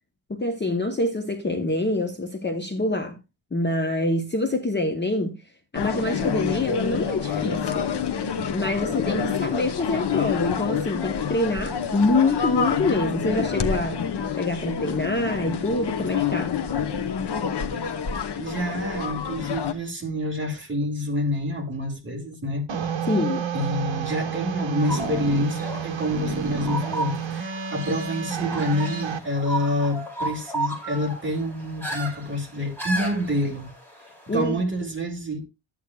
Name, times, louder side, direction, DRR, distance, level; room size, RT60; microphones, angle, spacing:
voice 1, 0.3-3.2 3.5-5.4 5.7-7.9 8.5-14.0 14.4-16.5 23.1-23.5 34.3-34.6, left 2 dB, 20° left, 0.8 m, -25 dB
sound 1, 5.7-19.7, left 7 dB, 55° left, 0.9 m, -27 dB
voice 2, 18.3-22.6 23.5-33.7 34.3-35.4, left 1 dB, 25° right, 2.3 m, -27 dB
sound 2, 22.7-29.2, right 6 dB, 70° right, 1.0 m, -30 dB
sound 3, 24.8-34.3, right 1 dB, 5° left, 2.6 m, -34 dB
12.5 x 8.5 x 2.3 m
wide cardioid pair, 175°, 48 cm